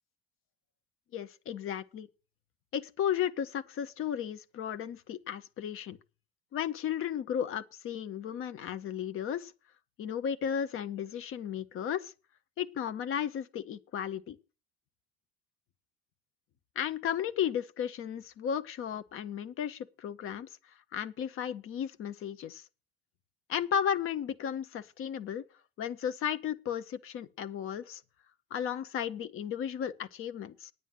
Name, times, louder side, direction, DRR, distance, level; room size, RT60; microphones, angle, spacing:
voice 1, 1.1-2.1 2.7-6.0 6.5-9.5 10.0-12.1 12.6-14.4 16.8-20.5 20.9-22.6 23.5-25.4 25.8-28.0 28.5-30.7, left 9 dB, 45° left, 1.0 m, -34 dB
9.4 x 9.0 x 6.4 m
figure-of-eight pair, 60°, 30 cm